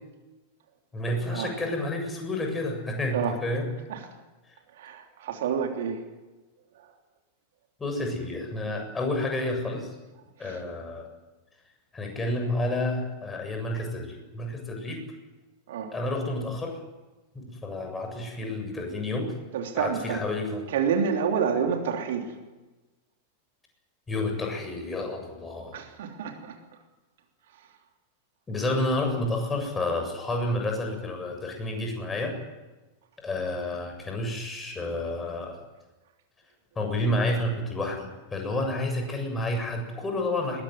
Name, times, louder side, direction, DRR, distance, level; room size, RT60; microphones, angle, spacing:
voice 1, 0.9-3.7 7.8-9.9 10.4-11.1 11.9-15.0 15.9-16.8 17.3-19.3 19.8-20.7 24.1-25.8 28.5-32.4 33.2-35.6 36.8-40.6, left 1 dB, 15° left, 3 dB, 7.6 m, -30 dB
voice 2, 4.8-6.0 10.4-10.6 15.7-15.9 19.5-20.2 20.7-22.3 25.7-26.5, right 7 dB, 55° right, 4 dB, 3.2 m, -28 dB
22.0 x 21.5 x 9.6 m, 1.2 s
figure-of-eight pair, 90°, 0 cm